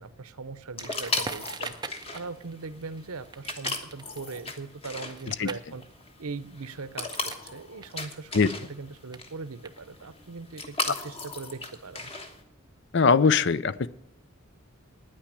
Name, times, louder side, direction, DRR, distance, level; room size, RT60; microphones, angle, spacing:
voice 1, 0.0-1.7 2.1-5.8 6.2-12.1, right 4 dB, 85° right, 14 dB, 0.8 m, -40 dB
sound 1, 0.8-12.4, left 2 dB, 25° left, 1.3 m, -37 dB
Crackle, 0.8-7.5 7.8-10.2, right 4 dB, 20° right, 0.5 m, -43 dB
voice 2, 12.9-13.9, left 5 dB, 55° left, 17 dB, 0.5 m, -21 dB
9.8 x 8.9 x 9.9 m, 0.77 s
head